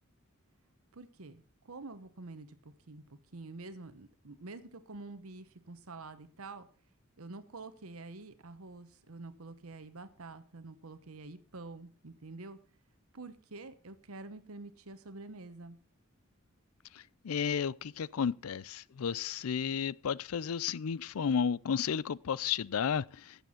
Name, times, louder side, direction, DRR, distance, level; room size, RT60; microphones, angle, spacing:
voice 1, 0.9-3.0 3.3-6.7 7.2-12.6 13.1-15.8, right 3 dB, 85° right, 1.1 m, -47 dB
voice 2, 17.2-23.4, left 7 dB, 90° left, 0.4 m, -32 dB
15.5 x 7.0 x 5.7 m
head